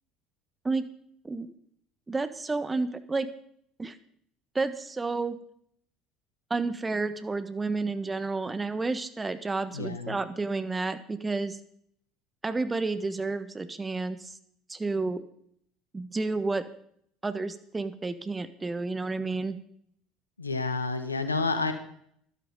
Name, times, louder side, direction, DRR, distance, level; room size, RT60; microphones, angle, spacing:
voice 1, 2.1-3.3 3.8-4.0 4.5-5.4 6.5-11.6 12.4-14.4 14.7-15.2 15.9-16.6 17.2-19.6, right 3 dB, 20° right, 11 dB, 1.3 m, -30 dB
voice 2, 9.7-10.2 20.4-21.7, left 3 dB, 90° left, 9 dB, 1.3 m, -29 dB
12.5 x 12.0 x 5.4 m, 0.66 s
figure-of-eight pair, 65°, 0 cm